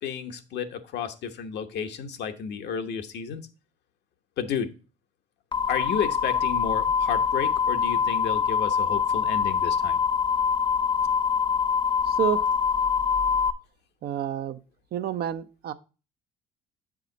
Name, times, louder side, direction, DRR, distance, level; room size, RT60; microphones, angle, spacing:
voice 1, 0.0-3.4 4.4-4.7 5.7-10.0, left 7 dB, 65° left, 7 dB, 1.0 m, -32 dB
sound 1, 5.5-13.5, left 6 dB, 25° left, 0.6 m, -24 dB
voice 2, 12.1-12.4 14.0-14.6 14.9-15.7, right 10 dB, 55° right, 10 dB, 0.7 m, -29 dB
7.4 x 4.9 x 3.9 m, 0.33 s
supercardioid pair, 80°, 19 cm